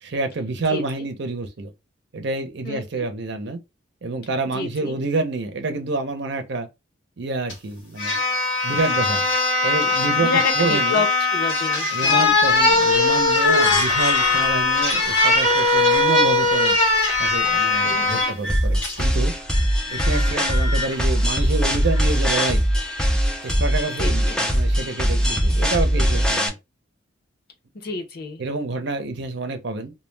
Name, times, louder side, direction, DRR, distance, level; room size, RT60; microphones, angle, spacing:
voice 1, 0.0-1.7 2.1-3.6 4.0-6.7 7.2-8.2 8.6-9.3 9.6-11.0 11.9-16.8 17.2-19.3 19.9-22.6 23.4-26.5 28.4-29.9, right 3 dB, 60° right, 0.6 m, -28 dB
voice 2, 2.6-3.1 4.5-5.0 10.2-12.2 17.8-18.3 24.0-24.4 27.7-28.4, left 3 dB, 55° left, 0.6 m, -28 dB
sound 1, 7.5-7.6 8.0-18.3 18.8-19.0, left 3 dB, 70° left, 1.0 m, -20 dB
sound 2, 12.2-18.8 19.2-22.5, left 2 dB, 90° left, 1.0 m, -29 dB
sound 3, 18.5-26.5, equal, 5° left, 0.4 m, -21 dB
2.2 x 2.1 x 3.2 m
head